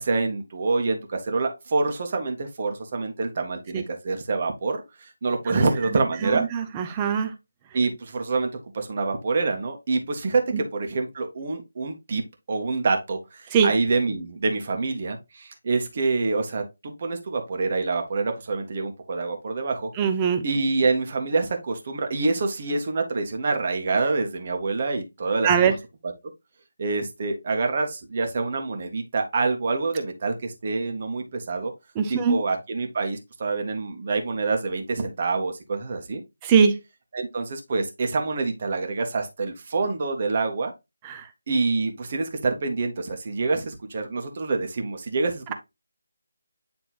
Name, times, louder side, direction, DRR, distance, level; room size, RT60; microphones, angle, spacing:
voice 1, 0.0-6.4 7.7-8.5 8.7-12.2 12.5-19.9 20.4-25.8 26.0-26.1 26.8-31.7 32.1-36.2 37.1-40.7 41.5-45.5, right 3 dB, 40° right, 1.5 m, -26 dB
voice 2, 6.2-7.3 13.5-13.7 20.0-20.4 25.4-25.7 32.0-32.3 36.4-36.7 41.0-41.2, right 6 dB, 20° right, 0.8 m, -21 dB
9.3 x 3.4 x 3.0 m
figure-of-eight pair, 160°, 0 cm